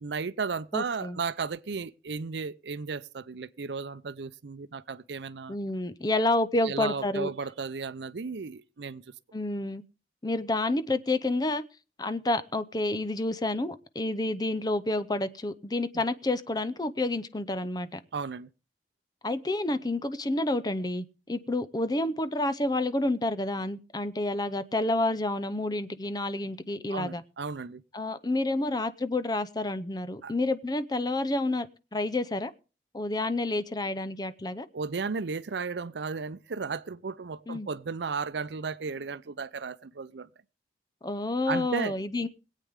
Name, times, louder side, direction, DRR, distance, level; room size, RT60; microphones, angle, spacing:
voice 1, 0.0-5.6 6.6-9.0 18.1-18.5 26.9-27.8 30.2-30.3 34.7-40.3 41.5-41.9, right 5 dB, 80° right, 0.6 m, -34 dB
voice 2, 0.7-1.2 5.5-7.3 9.3-9.8 10.2-11.6 12.0-18.0 19.2-27.2 27.9-31.7 31.9-32.5 32.9-34.7 37.5-37.7 41.0-42.3, left 2 dB, 20° left, 0.7 m, -29 dB
22.0 x 8.4 x 3.6 m
head